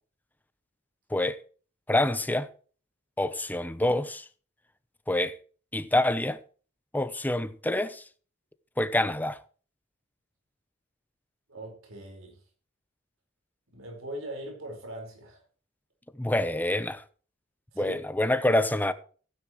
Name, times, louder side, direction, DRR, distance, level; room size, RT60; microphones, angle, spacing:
voice 1, 1.1-1.4 1.9-2.5 3.2-4.3 5.1-5.4 5.7-6.4 6.9-8.0 8.8-9.4 16.1-17.0 17.8-18.9, left 1 dB, 10° left, 0.7 m, -26 dB
voice 2, 11.5-12.4 13.7-15.4 17.7-18.0, right 1 dB, 75° right, 4.8 m, -40 dB
15.5 x 9.9 x 3.1 m
head